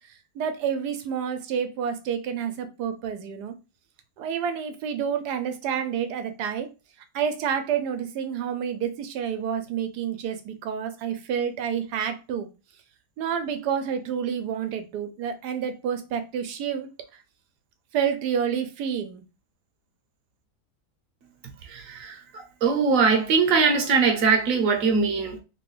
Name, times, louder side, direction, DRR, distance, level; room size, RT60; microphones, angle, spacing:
voice 1, 0.4-3.5 4.2-6.7 7.1-12.5 13.2-16.9 17.9-19.2, right 8 dB, 80° right, 1.2 m, -29 dB
voice 2, 21.6-25.4, right 5 dB, 60° right, 1.1 m, -22 dB
3.2 x 3.0 x 3.0 m
omnidirectional pair, 1.7 m